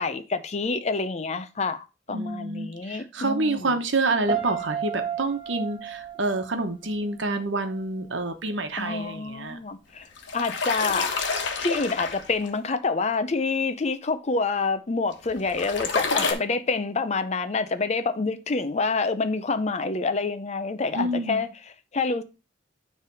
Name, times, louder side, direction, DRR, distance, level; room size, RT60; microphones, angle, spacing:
voice 1, 0.0-3.8 8.8-10.1 10.3-11.1 11.6-22.2, left 4 dB, 35° left, 0.5 m, -27 dB
voice 2, 2.1-9.6 20.9-21.4, right 2 dB, 75° right, 1.1 m, -28 dB
Piano, 4.3-7.4 7.7-8.1, right 7 dB, 25° right, 1.5 m, -32 dB
sound 1, 10.0-12.5 15.1-16.3, left 4 dB, 70° left, 1.3 m, -28 dB
9.5 x 3.4 x 4.6 m
head